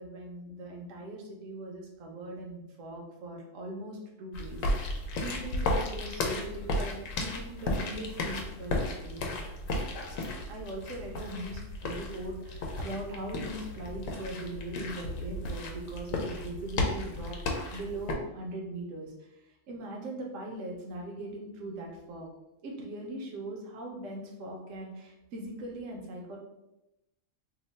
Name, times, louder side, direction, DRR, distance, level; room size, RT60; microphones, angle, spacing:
voice 1, 0.0-4.6 5.2-9.3 10.5-17.4 17.7-22.3 22.6-26.4, right 1 dB, 70° right, -1 dB, 1.0 m, -40 dB
sound 1, 4.3-18.1, left 2 dB, 85° left, 1.0 m, -34 dB
2.9 x 2.1 x 4.1 m, 0.91 s
omnidirectional pair, 1.3 m